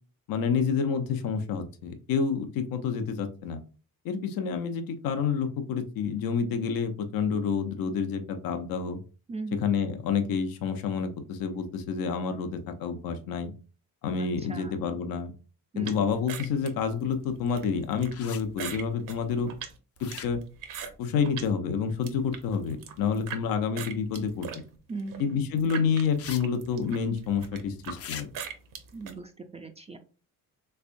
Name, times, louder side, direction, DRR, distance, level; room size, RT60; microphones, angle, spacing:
voice 1, 0.3-3.6 4.0-9.0 9.5-13.5 14.0-15.3 15.8-19.5 20.0-20.4 21.0-24.5 25.2-28.3, left 6 dB, 75° left, 8 dB, 0.7 m, -29 dB
voice 2, 14.4-14.9 15.7-16.1 24.9-25.4 28.9-30.0, right 3 dB, 20° right, 6 dB, 0.3 m, -39 dB
sound 1, 15.8-21.5 21.9-23.4 23.8-29.1, right 7 dB, 65° right, 0.9 m, -41 dB
sound 2, 18.1-18.4 20.0-20.6 24.1-24.2 26.2-26.4 26.7-26.8 27.9-28.2, left 8 dB, 45° left, 0.5 m, -41 dB
3.4 x 3.3 x 2.5 m, 0.36 s
cardioid pair, 120°, 34 cm